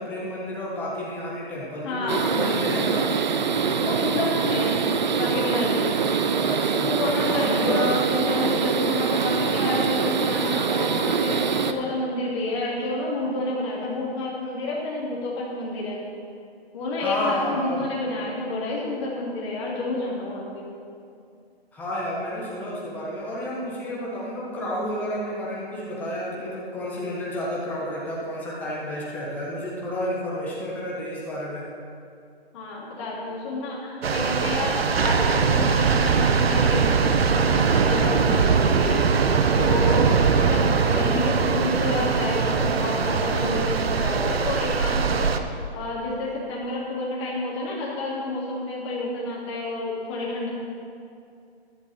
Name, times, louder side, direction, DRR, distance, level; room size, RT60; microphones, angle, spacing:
voice 1, 0.0-3.0 6.4-6.9 7.3-8.0 17.0-17.9 21.7-31.6, left 1 dB, 5° left, -6 dB, 1.3 m, -30 dB
voice 2, 1.8-2.3 3.8-4.9 5.1-5.8 6.7-16.0 16.7-20.6 32.5-39.0 39.6-45.3 45.7-50.5, left 2 dB, 25° left, -5 dB, 2.7 m, -29 dB
sound 1, 2.1-11.7, right 6 dB, 45° right, 0.7 m, -24 dB
sound 2, 34.0-45.4, right 5 dB, 70° right, 1.0 m, -21 dB
15.0 x 10.5 x 4.3 m, 2.4 s
hypercardioid pair, 165°, 32 cm